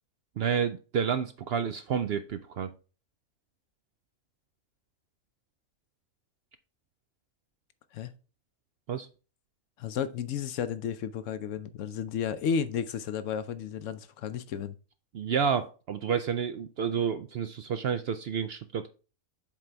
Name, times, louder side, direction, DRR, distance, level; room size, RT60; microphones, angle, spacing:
voice 1, 0.4-2.7 8.9-9.1 15.1-18.9, right 7 dB, 65° right, 0.6 m, -30 dB
voice 2, 9.8-14.8, left 7 dB, 70° left, 0.9 m, -33 dB
7.3 x 3.9 x 4.5 m
omnidirectional pair, 1.4 m